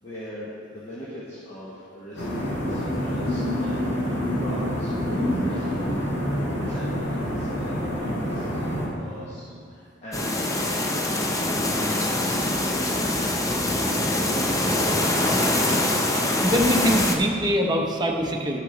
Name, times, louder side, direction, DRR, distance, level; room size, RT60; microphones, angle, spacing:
voice 1, 0.0-6.0 6.3-14.1, equal, 35° left, -7 dB, 1.2 m, -41 dB
sound 1, 2.2-8.9, equal, 60° left, 2.1 m, -27 dB
sound 2, 10.1-17.2, left 1 dB, 15° left, 0.6 m, -24 dB
voice 2, 16.4-18.6, equal, 20° right, 1 dB, 0.8 m, -23 dB
11.5 x 6.4 x 3.8 m, 2.5 s
head